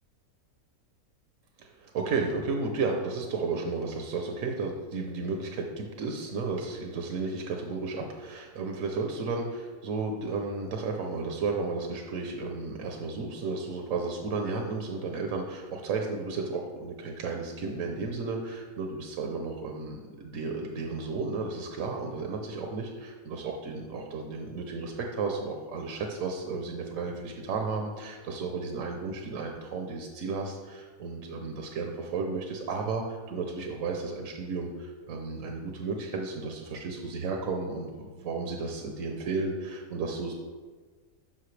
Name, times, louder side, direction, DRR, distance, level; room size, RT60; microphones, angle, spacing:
voice 1, 1.6-40.3, right 4 dB, 65° right, 2 dB, 1.1 m, -33 dB
11.5 x 5.5 x 3.2 m, 1.4 s
omnidirectional pair, 1.5 m